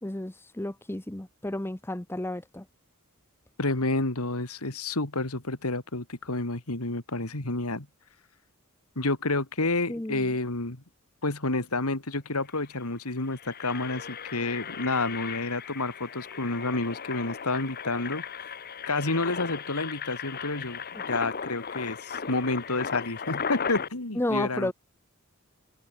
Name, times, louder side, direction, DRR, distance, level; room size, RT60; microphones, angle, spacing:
voice 1, 0.0-2.6 9.9-10.3 20.9-21.1 24.2-24.7, left 1 dB, 10° left, 0.8 m, -32 dB
voice 2, 3.6-7.9 9.0-10.8 11.2-18.2 18.9-20.8 21.1-24.7, left 2 dB, 85° left, 2.9 m, -29 dB
Engine, 12.5-12.7 13.2-23.9, left 6 dB, 45° left, 1.2 m, -37 dB
head